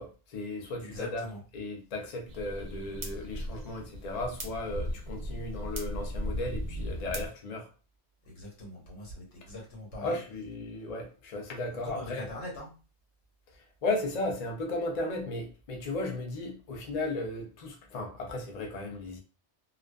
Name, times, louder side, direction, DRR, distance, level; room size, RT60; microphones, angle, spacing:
voice 1, 0.0-1.2 1.5-7.7 10.0-12.3 13.8-19.2, left 2 dB, 45° left, 0.5 m, -35 dB
voice 2, 0.8-1.4 8.2-10.2 11.8-12.7, left 2 dB, 75° left, 1.3 m, -42 dB
sound 1, 2.3-7.3, equal, 45° right, 0.6 m, -37 dB
2.4 x 2.3 x 2.2 m
omnidirectional pair, 1.2 m